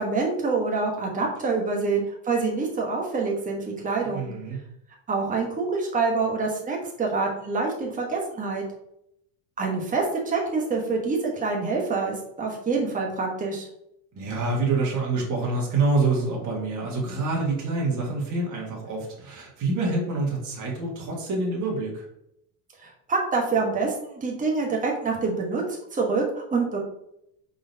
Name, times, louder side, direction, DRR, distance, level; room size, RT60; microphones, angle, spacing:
voice 1, 0.0-4.3 5.1-8.6 9.6-13.6 22.8-26.8, right 4 dB, 15° right, -1 dB, 1.1 m, -26 dB
voice 2, 4.0-4.6 14.2-22.0, right 3 dB, 40° right, -2 dB, 1.7 m, -26 dB
4.7 x 4.0 x 2.7 m, 0.77 s
supercardioid pair, 105°, 45 cm